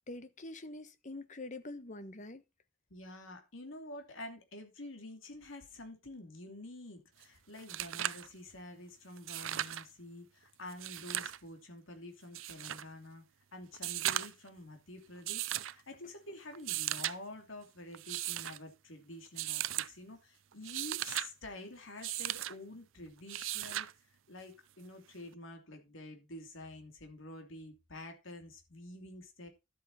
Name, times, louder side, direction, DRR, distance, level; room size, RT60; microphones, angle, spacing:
voice 1, 0.1-2.4 16.0-16.1, left 2 dB, 35° left, 1.2 m, -45 dB
voice 2, 2.9-13.2 13.5-23.9 24.3-29.5, left 2 dB, 70° left, 3.0 m, -48 dB
sound 1, 7.2-7.3 7.6-8.3 9.2-9.8 10.7-11.4 12.3-12.8 13.7-14.5 15.3-15.8 16.5-17.2 17.9-18.6 19.4-19.9 20.5-21.3 22.0-22.5 23.3-23.9 25.3-25.4, right 13 dB, 70° right, 0.5 m, -37 dB
12.5 x 8.3 x 4.2 m
head